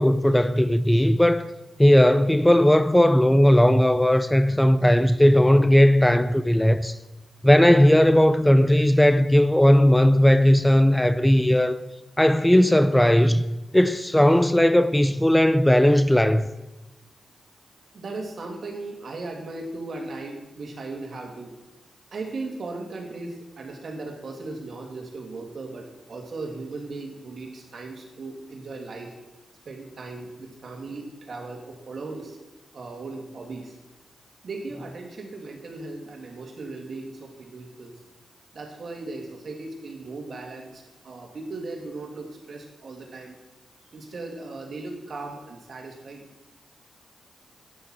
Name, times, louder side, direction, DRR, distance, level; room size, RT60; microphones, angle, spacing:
voice 1, 0.0-1.5 1.8-7.0 7.4-11.8 12.2-16.5, equal, 10° left, 0.6 m, -17 dB
voice 2, 17.9-21.5 22.1-29.1 29.6-32.4 32.7-33.7 34.4-37.9 38.5-43.3 43.9-46.2, right 3 dB, 65° right, 2.6 m, -37 dB
12.0 x 9.6 x 4.4 m
supercardioid pair, 45°, 0 cm